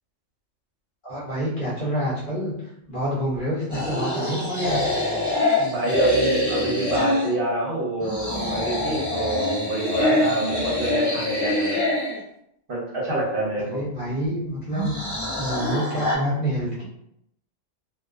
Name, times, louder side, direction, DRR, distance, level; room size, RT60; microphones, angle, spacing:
voice 1, 1.0-2.5 2.9-4.9 13.6-14.9 15.4-16.8, equal, 45° left, -8 dB, 0.9 m, -27 dB
sound 1, 3.7-7.3 8.0-12.2 14.7-16.1, left 1 dB, 20° left, 0.6 m, -25 dB
voice 2, 5.6-11.8 12.7-13.8, right 1 dB, 55° right, -6 dB, 0.8 m, -27 dB
2.3 x 2.3 x 2.4 m, 0.77 s
omnidirectional pair, 1.3 m